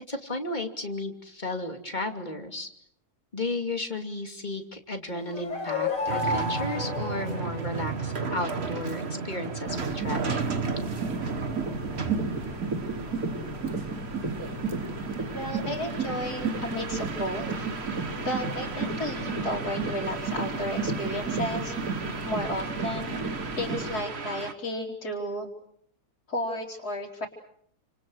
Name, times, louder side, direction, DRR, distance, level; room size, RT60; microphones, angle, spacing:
voice 1, 0.1-2.7 3.3-10.6, left 2 dB, 30° left, 4 dB, 2.9 m, -34 dB
sound 1, 5.1-8.0, left 3 dB, 55° left, 5.0 m, -31 dB
sound 2, 6.1-24.5, right 5 dB, 45° right, 1.7 m, -35 dB
sound 3, 9.7-24.0, right 3 dB, 70° right, 3.4 m, -33 dB
voice 2, 15.3-17.7 18.2-21.8 22.3-23.3 23.6-25.5 26.3-27.3, left 1 dB, 85° left, -3 dB, 3.9 m, -33 dB
30.0 x 27.0 x 6.4 m, 0.66 s
omnidirectional pair, 1.6 m